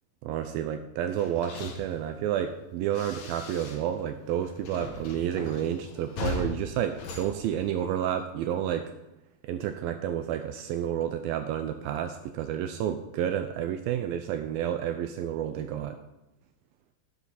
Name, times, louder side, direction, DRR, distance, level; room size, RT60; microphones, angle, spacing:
voice 1, 0.2-8.9 9.4-16.0, right 10 dB, 85° right, 8 dB, 2.1 m, -30 dB
sound 1, 1.1-4.0 4.3-8.2, left 3 dB, 65° left, 1.9 m, -39 dB
11.5 x 8.1 x 4.1 m, 0.95 s
omnidirectional pair, 4.7 m